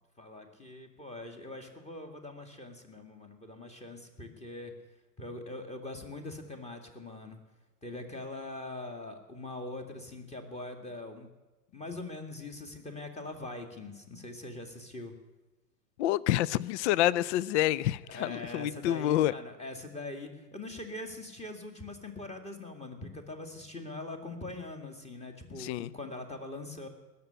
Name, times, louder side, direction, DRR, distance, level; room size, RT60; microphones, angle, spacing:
voice 1, 0.2-4.7 5.2-7.4 7.8-11.3 11.7-15.2 18.1-26.9, left 2 dB, 15° left, 6 dB, 2.0 m, -42 dB
voice 2, 16.0-19.3 25.6-25.9, left 13 dB, 50° left, 21 dB, 0.5 m, -28 dB
19.0 x 7.0 x 10.0 m, 1.1 s
hypercardioid pair, 115°, 49 cm